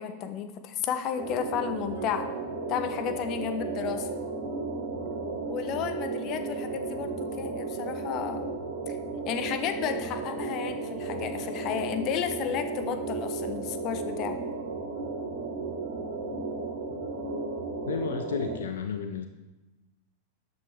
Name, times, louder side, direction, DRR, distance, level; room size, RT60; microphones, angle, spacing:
voice 1, 0.0-2.3 2.7-4.1 5.5-8.5 8.9-9.0 9.3-14.4, left 8 dB, 40° left, 8 dB, 1.0 m, -32 dB
sound 1, 1.2-18.5, right 3 dB, 65° right, 3.5 m, -34 dB
voice 2, 17.9-19.3, left 6 dB, 65° left, 7 dB, 0.7 m, -32 dB
12.5 x 9.3 x 3.5 m, 1.1 s
figure-of-eight pair, 90°, 0 cm